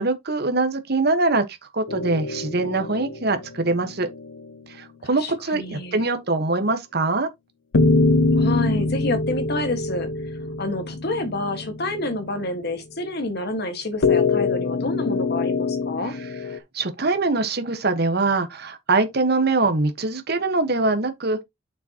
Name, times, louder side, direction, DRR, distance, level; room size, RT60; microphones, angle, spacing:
voice 1, 0.0-1.4 1.7-4.1 4.8-7.3 16.7-21.4, right 3 dB, 50° right, 1.3 m, -23 dB
sound 1, 1.9-4.5 7.7-12.4 14.0-16.6, left 3 dB, 70° left, 0.7 m, -24 dB
voice 2, 5.2-6.0 8.3-16.1, left 2 dB, 55° left, 1.7 m, -28 dB
6.9 x 6.2 x 2.9 m
head